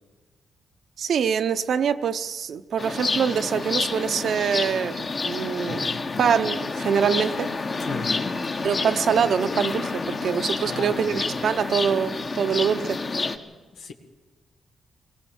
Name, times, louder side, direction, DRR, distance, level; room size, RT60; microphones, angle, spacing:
voice 1, 1.0-5.9 6.2-7.5 8.6-13.0, right 7 dB, 70° right, 10 dB, 0.9 m, -24 dB
sound 1, 2.8-13.4, left 3 dB, 45° left, 1.7 m, -29 dB
voice 2, 7.8-8.3 10.6-11.2 13.8-13.9, left 4 dB, 90° left, 2 dB, 2.0 m, -35 dB
22.5 x 17.5 x 7.4 m, 1.3 s
cardioid pair, 90°, 0 cm